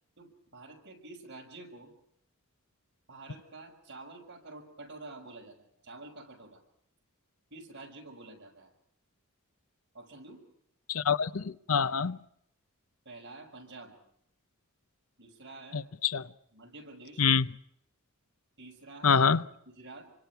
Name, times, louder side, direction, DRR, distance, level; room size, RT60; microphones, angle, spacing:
voice 1, 0.2-1.9 3.1-6.6 7.5-8.7 9.9-10.5 13.0-14.0 15.2-15.8 16.5-17.2 18.6-19.2 19.7-20.1, right 2 dB, 55° right, 6.1 m, -48 dB
voice 2, 10.9-12.2 15.7-16.3 17.2-17.5 19.0-19.4, left 6 dB, 75° left, 0.8 m, -26 dB
27.5 x 25.0 x 4.6 m
head